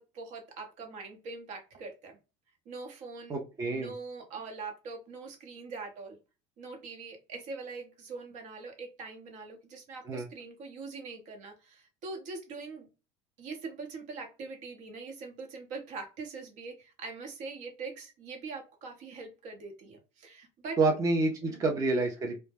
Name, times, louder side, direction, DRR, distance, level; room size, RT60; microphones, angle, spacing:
voice 1, 0.0-2.2 2.7-3.3 3.7-6.2 6.6-12.9 13.4-20.8 21.4-21.7, right 4 dB, 60° right, 3 dB, 0.9 m, -43 dB
voice 2, 3.3-3.9 10.1-10.3 20.8-22.4, right 3 dB, 25° right, 2 dB, 0.5 m, -28 dB
2.1 x 2.1 x 3.3 m, 0.30 s
supercardioid pair, 115°, 15 cm